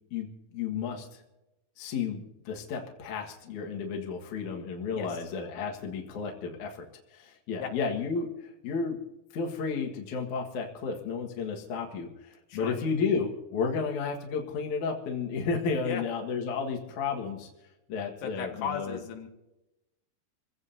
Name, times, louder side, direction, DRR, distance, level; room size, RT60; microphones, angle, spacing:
voice 1, 0.5-1.2 1.8-6.8 7.1-8.3 8.6-9.0 9.3-17.5 17.9-19.0, left 5 dB, 55° left, 1 dB, 2.7 m, -32 dB
voice 2, 18.2-19.3, left 6 dB, 85° left, 3 dB, 3.6 m, -36 dB
28.5 x 16.0 x 2.8 m, 0.97 s
omnidirectional pair, 4.6 m